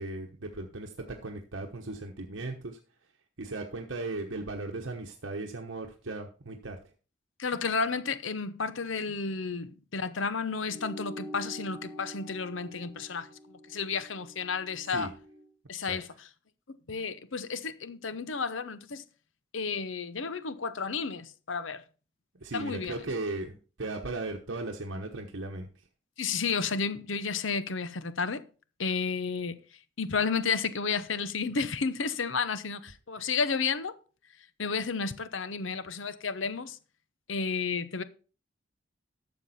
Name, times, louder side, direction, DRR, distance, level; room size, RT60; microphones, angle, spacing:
voice 1, 0.0-2.8 3.4-6.8 14.9-15.1 15.8-16.0 22.4-25.7 33.2-33.3, right 2 dB, 70° right, 1.1 m, -37 dB
voice 2, 7.4-13.3 13.7-15.1 15.7-16.1 16.7-19.0 19.5-21.8 22.5-23.0 26.2-28.4 28.8-29.6 30.0-33.9 34.6-36.8 37.3-38.0, left 5 dB, 75° left, 0.9 m, -32 dB
sound 1, 10.7-15.5, equal, 25° left, 2.5 m, -46 dB
12.5 x 7.3 x 4.2 m
head